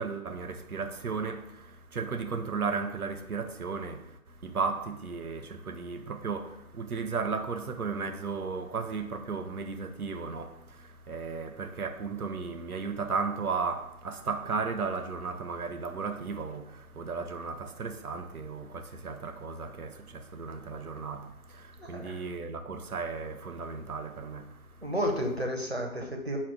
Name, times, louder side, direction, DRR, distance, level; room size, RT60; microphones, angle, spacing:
voice 1, 0.0-24.9, right 5 dB, 90° right, 0.6 m, -35 dB
voice 2, 21.8-22.2 24.8-26.4, equal, 45° right, 0.6 m, -31 dB
5.8 x 2.3 x 3.5 m
figure-of-eight pair, 175°, 43 cm